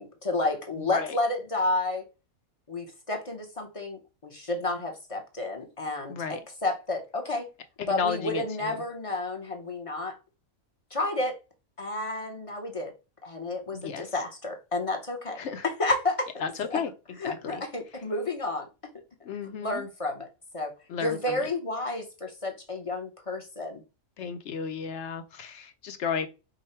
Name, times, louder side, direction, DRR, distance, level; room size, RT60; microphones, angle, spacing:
voice 1, 0.0-2.0 2.7-7.5 7.9-10.1 10.9-11.4 11.8-12.9 13.2-15.4 15.6-16.3 16.7-16.8 17.2-18.7 19.6-20.3 20.5-20.7 21.0-23.8, left 2 dB, 30° left, 0.8 m, -31 dB
voice 2, 6.1-6.4 7.8-8.8 13.7-14.1 15.4-15.6 16.4-16.9 17.2-17.6 19.2-19.8 20.9-21.5 24.2-26.3, left 6 dB, 60° left, 0.8 m, -33 dB
5.1 x 2.3 x 4.3 m
omnidirectional pair, 1.5 m